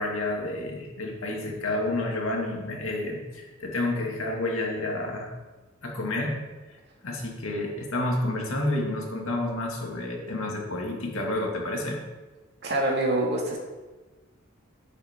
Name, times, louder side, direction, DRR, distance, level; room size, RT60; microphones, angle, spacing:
voice 1, 0.0-5.3 5.8-6.4 7.0-12.0, left 2 dB, 85° left, 0 dB, 2.2 m, -30 dB
voice 2, 12.6-13.6, right 1 dB, 55° right, -1 dB, 2.1 m, -25 dB
10.5 x 8.4 x 3.7 m, 1.2 s
head